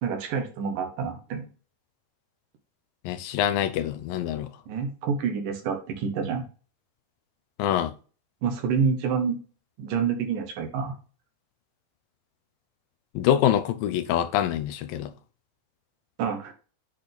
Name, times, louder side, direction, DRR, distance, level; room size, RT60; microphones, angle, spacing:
voice 1, 0.0-1.5 4.7-6.4 8.4-9.4 9.8-11.0 16.2-16.5, right 6 dB, 70° right, 2.8 m, -28 dB
voice 2, 3.0-4.5 7.6-7.9 13.2-15.1, left 11 dB, 80° left, 2.3 m, -25 dB
8.4 x 4.2 x 3.4 m
omnidirectional pair, 4.0 m